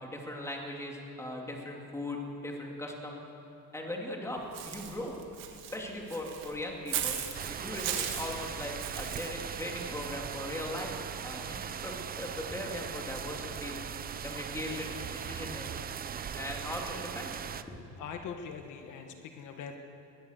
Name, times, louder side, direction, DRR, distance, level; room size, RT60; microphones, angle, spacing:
voice 1, 0.0-3.2 3.7-5.2 5.7-7.2 7.6-10.9 11.2-13.8 14.2-15.9 16.3-17.8, left 1 dB, 10° left, 0 dB, 2.7 m, -39 dB
Walk footsteps / Bird, 4.5-9.3, right 9 dB, 70° right, 2.6 m, -37 dB
sound 1, 7.3-17.6, right 8 dB, 25° right, 0.6 m, -39 dB
voice 2, 18.0-19.8, left 6 dB, 60° left, 5 dB, 1.6 m, -42 dB
22.0 x 20.5 x 6.6 m, 2.8 s
cardioid pair, 160°, 34 cm